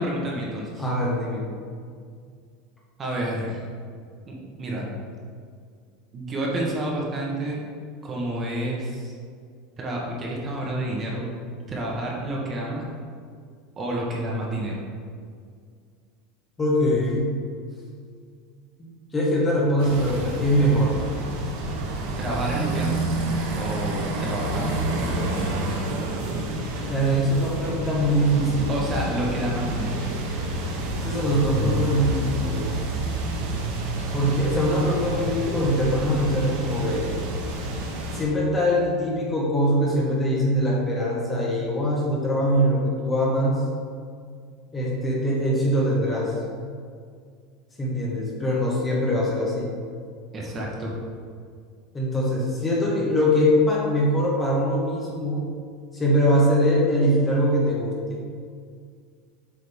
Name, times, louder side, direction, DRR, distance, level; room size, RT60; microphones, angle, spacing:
voice 1, 0.0-0.9 3.0-3.6 4.3-4.9 6.1-7.6 8.0-9.1 9.8-11.2 11.7-12.9 13.8-14.8 22.2-23.2 23.6-24.7 25.0-25.4 28.7-30.0 50.3-51.0, right 1 dB, 20° right, -2 dB, 1.1 m, -29 dB
voice 2, 0.8-1.5 16.6-17.5 18.8-21.0 26.9-28.8 31.0-32.7 34.1-37.1 38.1-43.6 44.7-46.4 47.8-49.7 51.9-55.4 55.9-58.2, equal, 15° left, -3 dB, 1.0 m, -22 dB
sound 1, 19.8-38.2, right 2 dB, 75° right, 1.3 m, -29 dB
8.0 x 5.2 x 3.5 m, 2.1 s
supercardioid pair, 170°, 0 cm